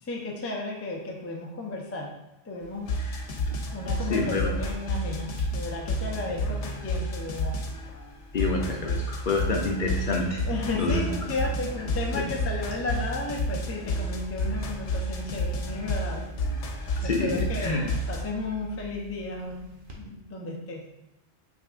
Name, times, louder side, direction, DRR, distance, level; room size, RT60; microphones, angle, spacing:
voice 1, 0.0-2.1 2.4-2.9 3.7-7.6 10.5-16.3 17.0-19.7 20.0-20.9, left 2 dB, 20° left, 0 dB, 0.4 m, -34 dB
sound 1, 2.6-20.0, equal, 50° right, 0.9 m, -46 dB
sound 2, 2.9-7.9 8.4-18.2, left 1 dB, 85° left, 1.0 m, -30 dB
voice 2, 3.0-3.6 4.1-4.5 8.3-10.5 10.7-11.1 12.1-12.2 17.0-17.9, left 3 dB, 55° left, 0 dB, 0.7 m, -28 dB
6.1 x 3.5 x 2.4 m, 0.94 s
omnidirectional pair, 1.2 m